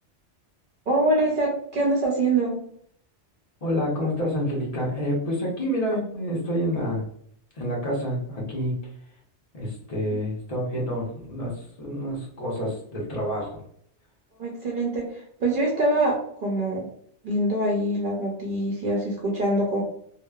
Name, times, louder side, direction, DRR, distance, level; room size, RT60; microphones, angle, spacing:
voice 1, 0.9-2.6 10.1-10.2 14.4-16.9 17.2-19.8, right 1 dB, 55° right, -2 dB, 0.7 m, -24 dB
voice 2, 3.6-7.1 7.5-8.9 9.5-13.6, equal, 35° left, -3 dB, 0.9 m, -28 dB
2.9 x 2.1 x 2.3 m, 0.66 s
omnidirectional pair, 1.2 m